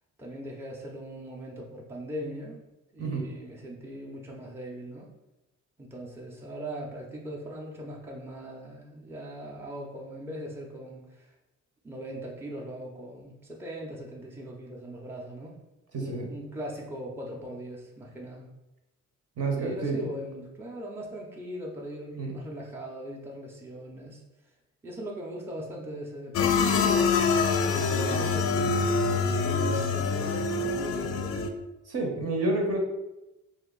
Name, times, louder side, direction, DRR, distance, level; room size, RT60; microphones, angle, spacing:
voice 1, 0.2-2.6 2.9-5.1 5.8-11.3 11.8-15.6 16.0-18.4 19.5-24.2 24.8-27.1 27.7-31.5, equal, 10° right, -2 dB, 0.6 m, -40 dB
voice 2, 15.9-16.3 19.4-20.0 22.2-22.4 31.9-32.8, right 2 dB, 55° right, 1 dB, 0.9 m, -29 dB
sound 1, 26.3-31.5, left 4 dB, 50° left, 0.4 m, -25 dB
2.8 x 2.6 x 3.8 m, 0.98 s
cardioid pair, 90°, 30 cm